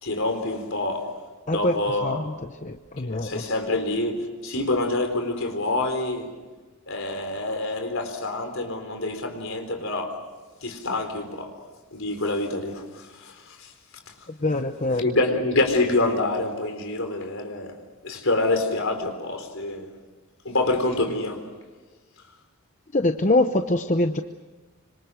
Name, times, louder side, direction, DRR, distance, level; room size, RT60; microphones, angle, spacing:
voice 1, 0.0-1.1 1.5-2.3 3.0-6.3 6.9-10.2 10.6-11.6 11.9-13.7 14.1-14.2 15.0-17.8 18.0-19.9 20.4-21.4, left 2 dB, 65° left, 4.2 m, -26 dB
voice 2, 2.0-2.3 2.6-3.4 14.4-15.1 22.9-24.2, left 2 dB, 35° left, 0.8 m, -23 dB
26.0 x 26.0 x 6.4 m
head